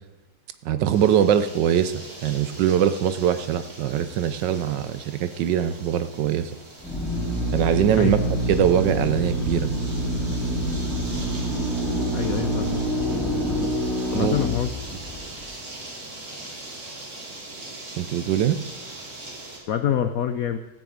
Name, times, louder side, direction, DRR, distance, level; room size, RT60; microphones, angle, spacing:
voice 1, 0.6-6.5 7.5-8.2 8.5-9.7 14.1-14.4 18.0-18.6, right 9 dB, 70° right, 12 dB, 1.2 m, -22 dB
sound 1, 0.9-19.6, right 2 dB, 50° right, 3.0 m, -41 dB
Drill, 6.8-15.4, right 1 dB, ahead, 3.0 m, -26 dB
voice 2, 12.1-12.8 14.1-14.7 19.7-20.6, left 9 dB, 75° left, 9 dB, 0.8 m, -25 dB
13.5 x 6.3 x 8.7 m, 1.0 s
omnidirectional pair, 2.2 m